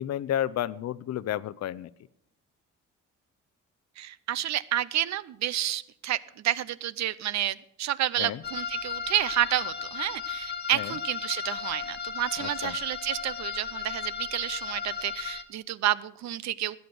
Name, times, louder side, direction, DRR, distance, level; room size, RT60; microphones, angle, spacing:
voice 1, 0.0-1.9 8.2-8.4 10.7-11.0 12.4-12.8, left 11 dB, 60° left, 17 dB, 0.6 m, -31 dB
voice 2, 4.0-6.2 6.4-16.8, right 12 dB, 65° right, 19 dB, 0.6 m, -30 dB
sound 1, 8.4-15.4, left 6 dB, 35° left, 1.1 m, -35 dB
13.0 x 9.3 x 6.1 m, 0.74 s
cardioid pair, 90°, 30 cm